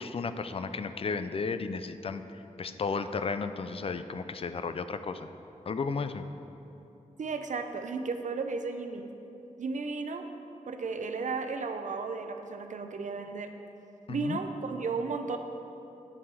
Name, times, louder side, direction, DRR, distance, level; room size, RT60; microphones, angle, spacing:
voice 1, 0.0-2.2 2.6-5.3 5.7-6.2 14.1-14.4, left 4 dB, 45° left, 10 dB, 0.4 m, -33 dB
voice 2, 7.2-9.0 9.6-10.3 10.7-13.5 14.1-15.4, right 4 dB, 70° right, 6 dB, 0.5 m, -34 dB
9.3 x 5.9 x 4.7 m, 3.0 s
wide cardioid pair, 135°, 13 cm